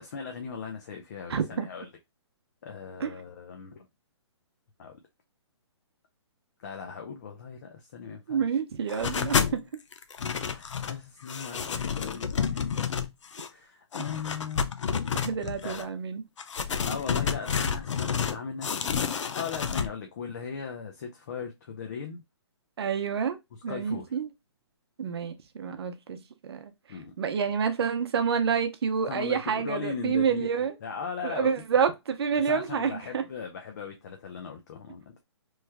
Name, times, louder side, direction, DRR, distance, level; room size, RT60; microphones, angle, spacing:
voice 1, 0.0-1.9 2.6-3.9 4.8-5.0 6.6-8.4 10.4-12.7 13.5-14.6 15.6-15.9 16.8-22.2 23.7-24.1 26.9-27.1 29.1-31.5 32.4-35.2, left 6 dB, 40° left, 0.5 m, -38 dB
voice 2, 1.3-1.7 3.0-3.1 8.3-9.6 15.2-16.2 22.8-23.4 23.6-24.3 25.0-26.7 27.2-30.7 31.2-33.2, right 6 dB, 60° right, 0.7 m, -28 dB
sound 1, 8.9-9.6 9.9-11.0 11.3-13.5 13.9-15.8 16.4-18.4 18.6-19.9, left 6 dB, 90° left, 0.5 m, -30 dB
3.1 x 2.2 x 3.3 m
hypercardioid pair, 165°, 15 cm